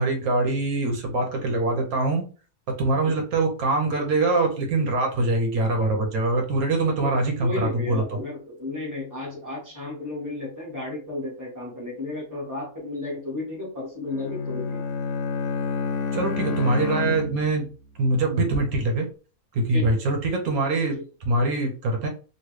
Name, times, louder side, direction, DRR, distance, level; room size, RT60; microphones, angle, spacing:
voice 1, 0.0-2.3 2.8-8.0 16.1-17.7 18.0-19.1 19.5-21.0 21.2-22.1, right 2 dB, 90° right, 2 dB, 1.3 m, -23 dB
voice 2, 7.4-14.8 19.7-19.9 20.9-21.0, left 2 dB, 15° right, -4 dB, 1.4 m, -33 dB
Bowed string instrument, 14.1-17.7, left 5 dB, 70° left, 0.9 m, -29 dB
3.0 x 2.6 x 3.1 m, 0.36 s
omnidirectional pair, 1.5 m